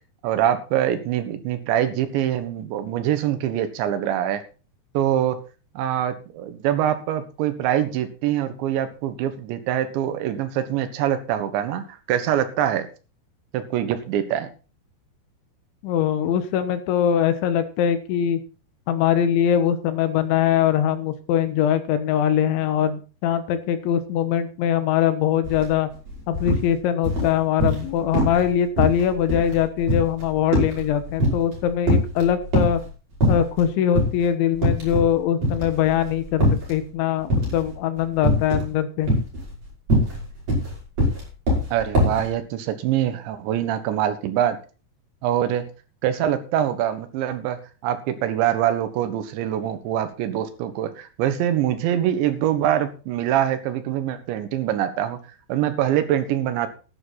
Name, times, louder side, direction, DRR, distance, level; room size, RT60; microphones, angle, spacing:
voice 1, 0.2-4.4 5.0-5.4 5.8-12.9 13.5-14.5 41.7-44.6 45.2-45.7 46.0-55.2 55.5-56.7, right 11 dB, 80° right, 9 dB, 3.6 m, -24 dB
voice 2, 15.8-18.4 18.9-25.9 26.3-32.8 33.3-39.1, left 9 dB, 85° left, 10 dB, 3.6 m, -22 dB
sound 1, 25.4-25.6 25.9-26.7 27.0-27.9 28.1-28.5 28.8-31.6 31.8-32.8 33.2-33.6 34.0-34.1 34.6-35.1 35.4-36.8 37.3-37.7 38.2-38.7 39.0-42.3, equal, 35° right, 6.9 m, -22 dB
12.0 x 11.5 x 4.2 m, 0.34 s
omnidirectional pair, 5.2 m